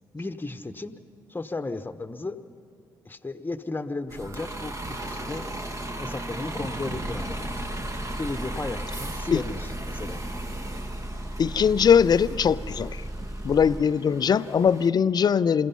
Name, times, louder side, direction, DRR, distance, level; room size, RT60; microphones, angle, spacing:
voice 1, 0.1-0.9 1.3-2.4 3.0-5.5 6.0-7.7 8.2-10.2, left 3 dB, 20° left, 1.2 m, -34 dB
Bus, 4.1-14.9, right 1 dB, 30° right, 1.5 m, -37 dB
Motor vehicle (road) / Engine, 6.9-13.8, right 1 dB, 5° right, 0.5 m, -36 dB
voice 2, 11.4-13.0 13.4-15.7, left 7 dB, 40° left, 0.5 m, -21 dB
28.0 x 17.0 x 5.7 m
figure-of-eight pair, 40°, 10 cm